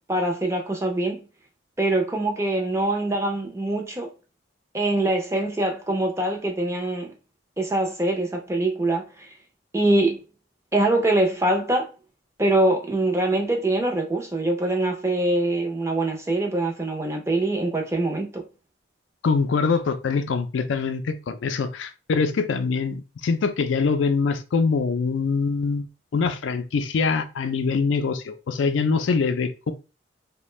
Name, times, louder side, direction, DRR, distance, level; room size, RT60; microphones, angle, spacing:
voice 1, 0.1-1.2 1.8-4.1 4.7-7.1 7.6-9.3 9.7-10.2 10.7-11.9 12.4-18.4, right 2 dB, 15° right, 0.5 m, -23 dB
voice 2, 19.2-25.9 26.1-29.7, left 4 dB, 80° left, 0.4 m, -24 dB
2.5 x 2.1 x 3.1 m
head